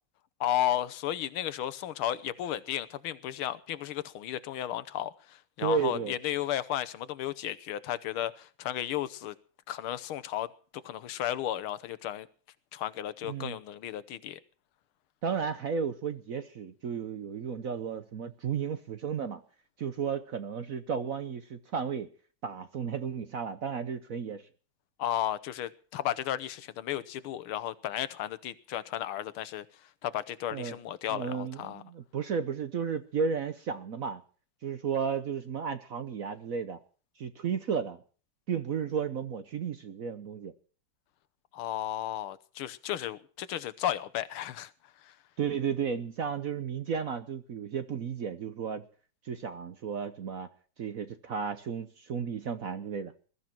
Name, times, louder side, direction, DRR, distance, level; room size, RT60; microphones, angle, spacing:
voice 1, 0.4-9.3 9.7-10.5 10.8-12.3 12.7-14.4 25.0-29.6 30.0-31.8 41.5-44.7 45.0-45.1, left 12 dB, 85° left, 16 dB, 1.7 m, -34 dB
voice 2, 5.6-6.1 13.2-13.6 15.2-19.4 19.8-22.1 22.4-24.4 30.5-30.8 31.1-34.2 34.6-36.8 37.2-38.0 38.5-40.5 45.4-48.8 49.2-50.5 50.8-53.1, right 6 dB, 55° right, 10 dB, 1.0 m, -33 dB
21.0 x 12.5 x 4.5 m, 0.41 s
omnidirectional pair, 2.3 m